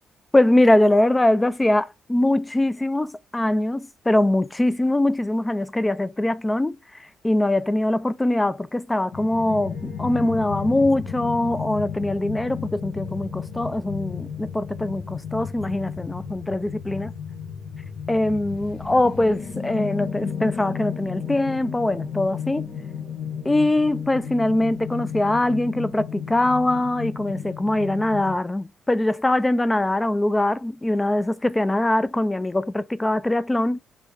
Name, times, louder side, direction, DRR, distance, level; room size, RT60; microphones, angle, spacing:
voice 1, 0.3-17.1 18.1-22.7 23.5-33.8, left 1 dB, 15° left, 0.3 m, -22 dB
sound 1, 9.1-28.3, left 7 dB, 85° left, 1.2 m, -33 dB
3.3 x 3.1 x 3.4 m
cardioid pair, 90°, 0 cm